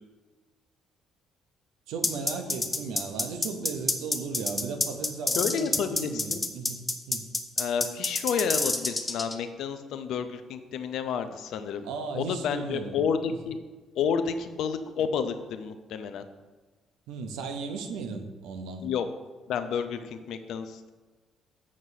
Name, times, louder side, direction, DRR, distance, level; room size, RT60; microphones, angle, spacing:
voice 1, 1.9-6.8 7.1-7.3 11.8-13.0 13.3-13.4 17.1-18.8, right 4 dB, 75° right, 5 dB, 0.7 m, -36 dB
sound 1, 2.0-9.4, left 2 dB, 20° left, 0.9 m, -27 dB
voice 2, 5.3-6.5 7.6-11.9 12.1-13.6 13.9-16.2 18.8-19.1 19.5-20.9, left 7 dB, 70° left, 9 dB, 0.5 m, -30 dB
7.3 x 6.0 x 2.7 m, 1.3 s
hypercardioid pair, 50°, 0 cm